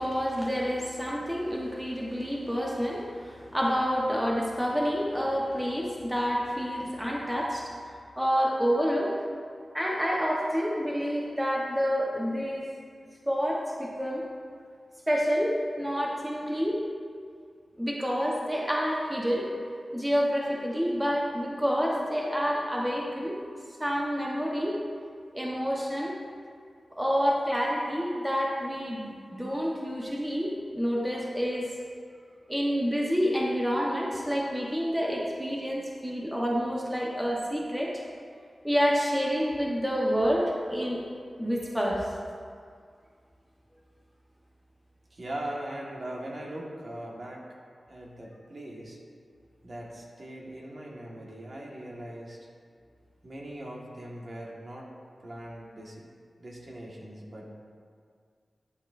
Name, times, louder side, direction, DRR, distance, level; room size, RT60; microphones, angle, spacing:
voice 1, 0.0-7.7 8.2-9.1 9.7-12.7 13.3-14.3 15.1-16.8 17.8-19.5 19.9-23.4 23.8-24.8 25.3-26.2 27.0-31.7 32.5-38.0 38.6-41.0 41.4-42.1, equal, 10° right, -3 dB, 1.0 m, -28 dB
voice 2, 45.1-47.5 47.9-49.0 49.6-52.4 53.2-54.9 55.2-56.1 56.4-57.5, right 1 dB, 45° right, -2 dB, 1.5 m, -40 dB
12.0 x 8.8 x 2.6 m, 2.1 s
wide cardioid pair, 90°, 0 cm